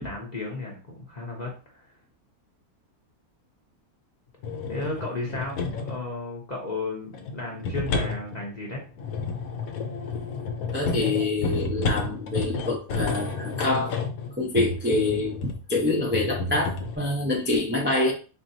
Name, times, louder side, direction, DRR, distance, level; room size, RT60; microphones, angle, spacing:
voice 1, 0.0-1.9 4.7-8.8, left 2 dB, 35° left, -2 dB, 0.8 m, -34 dB
sound 1, 4.4-6.1 7.1-15.7 16.1-17.0, left 4 dB, 70° left, 1.1 m, -31 dB
voice 2, 10.7-13.9 14.4-18.1, left 2 dB, 10° right, -3 dB, 0.5 m, -26 dB
4.4 x 3.0 x 2.7 m, 0.36 s
omnidirectional pair, 1.6 m